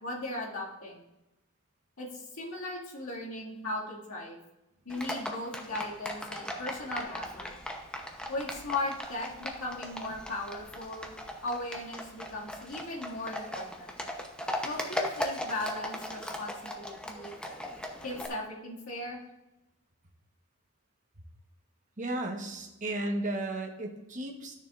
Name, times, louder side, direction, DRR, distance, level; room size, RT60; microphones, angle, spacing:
voice 1, 0.0-1.0 2.0-4.4 4.9-7.5 8.3-11.1 11.4-14.0 14.6-17.3 18.0-19.2, left 2 dB, 75° left, -4 dB, 2.1 m, -37 dB
Livestock farm animals working animals, 4.9-18.3, left 1 dB, 5° left, 0.8 m, -38 dB
voice 2, 22.0-24.5, right 1 dB, 35° right, 2 dB, 1.2 m, -34 dB
13.0 x 6.7 x 2.5 m, 0.94 s
head